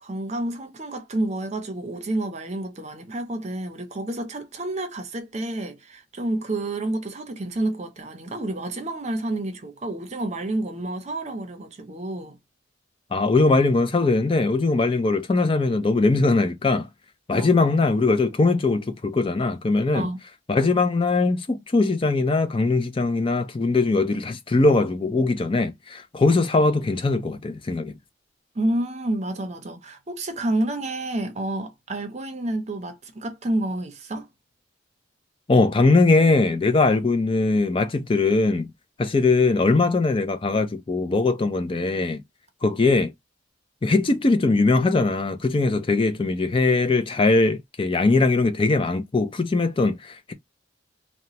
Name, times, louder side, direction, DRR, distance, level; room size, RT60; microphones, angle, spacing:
voice 1, 0.0-12.4 17.4-17.6 19.9-20.2 28.5-34.3, right 1 dB, 35° right, 0.6 m, -29 dB
voice 2, 13.1-16.9 17.3-20.1 20.5-27.9 35.5-38.7 39.0-42.2 42.6-43.1 43.8-50.3, left 3 dB, 30° left, 0.4 m, -21 dB
2.9 x 2.1 x 2.8 m
head